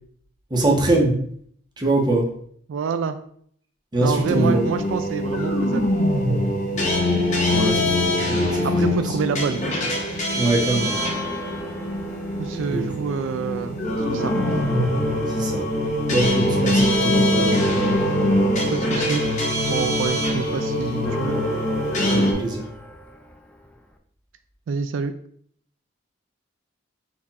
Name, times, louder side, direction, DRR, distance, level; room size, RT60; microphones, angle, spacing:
voice 1, 0.5-1.2 1.8-2.3 3.9-4.7 7.5-9.2 10.4-10.9 12.7-12.9 15.3-15.6 16.1-17.8 22.1-22.7, right 2 dB, 20° right, -1 dB, 0.9 m, -23 dB
voice 2, 2.7-3.2 4.0-5.9 8.6-9.7 12.4-13.8 14.1-14.6 18.7-19.2 19.7-21.4 24.7-25.1, right 6 dB, 80° right, 10 dB, 0.3 m, -27 dB
sound 1, 4.2-22.3, left 1 dB, 40° left, 1.0 m, -23 dB
Church bell, 10.7-13.1 13.5-13.6 13.9-24.0, left 2 dB, 5° left, 0.3 m, -37 dB
4.5 x 2.5 x 4.0 m, 0.62 s
head